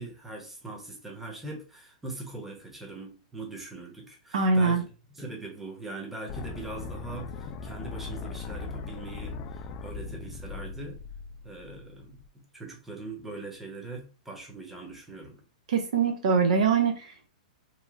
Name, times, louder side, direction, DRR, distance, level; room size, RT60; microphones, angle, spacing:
voice 1, 0.0-4.8 5.1-11.0 11.4-15.4, right 3 dB, 5° right, 1.0 m, -41 dB
voice 2, 4.3-4.8 15.7-17.3, right 5 dB, 70° right, 0.6 m, -23 dB
sound 1, 6.3-12.3, left 5 dB, 35° left, 0.3 m, -39 dB
2.9 x 2.7 x 2.5 m
hypercardioid pair, 120°, 4 cm